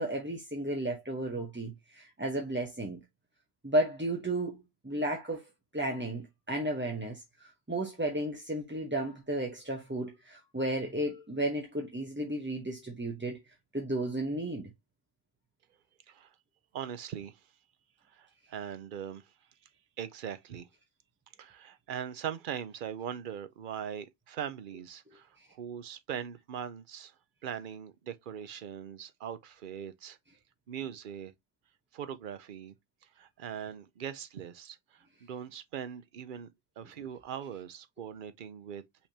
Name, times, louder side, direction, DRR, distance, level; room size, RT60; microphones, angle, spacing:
voice 1, 0.0-3.0 3.6-5.4 5.7-13.4 13.7-14.7, right 1 dB, 10° right, 0.7 m, -33 dB
voice 2, 16.7-17.4 18.1-19.2 20.0-20.7 21.4-27.1 27.4-30.2 30.7-31.3 31.9-32.7 33.2-36.5 36.8-38.8, right 9 dB, 55° right, 0.7 m, -41 dB
5.6 x 3.3 x 2.8 m
omnidirectional pair, 1.2 m